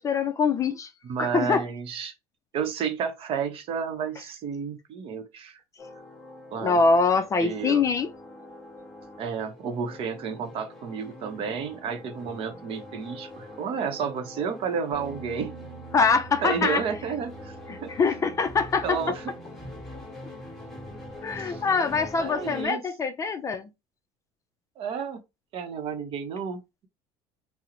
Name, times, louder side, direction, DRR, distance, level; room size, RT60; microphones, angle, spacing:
voice 1, 0.0-0.9 1.2-1.6 6.6-8.1 15.9-16.8 17.7-19.0 21.2-23.7, left 4 dB, 25° left, 0.4 m, -24 dB
voice 2, 1.0-2.1 2.5-5.6 6.5-6.8 7.1-7.8 9.2-15.5 16.4-17.9 18.8-19.3 21.3-21.6 22.2-22.8 24.8-25.2 25.5-26.9, right 6 dB, 50° right, 0.7 m, -31 dB
sound 1, 5.8-22.7, left 1 dB, ahead, 1.3 m, -43 dB
Bass guitar, 14.9-21.2, right 7 dB, 90° right, 0.5 m, -47 dB
2.8 x 2.0 x 3.7 m
cardioid pair, 120°, 12 cm